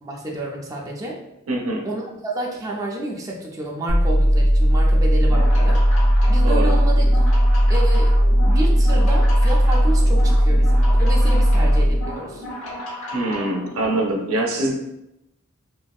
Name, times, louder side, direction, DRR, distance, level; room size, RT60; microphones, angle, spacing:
voice 1, 0.0-1.2 1.8-5.8 6.3-7.0 7.7-8.1 8.4-12.4, right 1 dB, 15° right, -2 dB, 0.3 m, -30 dB
voice 2, 1.5-1.8 6.4-6.7 13.1-14.7, right 1 dB, 90° right, 0 dB, 0.6 m, -23 dB
sound 1, 3.9-11.9, equal, 65° left, 0.6 m, -16 dB
sound 2, 5.2-14.1, left 1 dB, 80° left, 1.0 m, -34 dB
2.9 x 2.6 x 2.3 m, 0.87 s
head